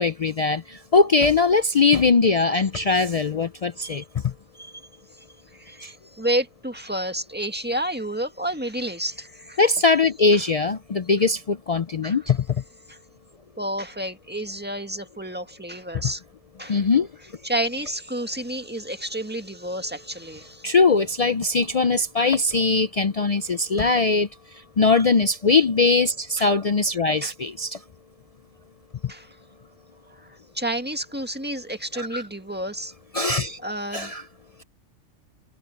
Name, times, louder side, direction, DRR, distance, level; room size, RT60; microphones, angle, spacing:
voice 1, 0.0-4.3 5.8-5.9 9.6-12.4 16.7-17.1 20.6-24.3 24.8-27.8 31.9-32.2 33.1-33.6 33.9-34.2, left 4 dB, 55° left, 0.4 m, -21 dB
voice 2, 6.1-9.6 10.3-10.4 12.0-12.2 12.9-13.0 13.6-16.2 16.6-16.9 17.4-20.7 26.4-26.5 27.2-27.3 29.1-29.3 30.5-32.9 33.6-34.1, right 1 dB, 10° right, 1.7 m, -30 dB
omnidirectional pair, 1.3 m